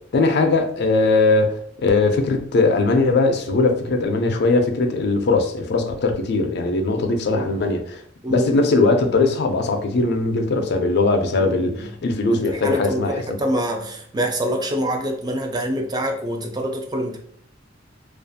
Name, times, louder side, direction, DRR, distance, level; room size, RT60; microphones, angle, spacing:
voice 1, 0.1-1.6 1.8-8.0 8.3-13.1, left 3 dB, 60° left, 0.4 m, -20 dB
voice 2, 11.3-11.9 12.3-17.2, equal, 20° right, 0.4 m, -26 dB
2.5 x 2.3 x 2.6 m
head